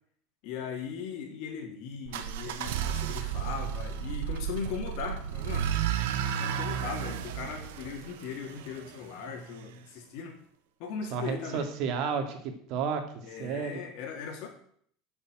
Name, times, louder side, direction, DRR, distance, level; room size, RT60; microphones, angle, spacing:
voice 1, 0.4-5.7 6.4-10.4 10.8-11.6 13.2-14.5, left 6 dB, 60° left, 3 dB, 3.4 m, -38 dB
sound 1, 2.0-8.9, right 9 dB, 85° right, 1.4 m, -33 dB
voice 2, 11.1-13.0 13.4-13.7, right 6 dB, 55° right, 6 dB, 2.3 m, -31 dB
10.0 x 7.2 x 8.9 m, 0.62 s
supercardioid pair, 150°, 0 cm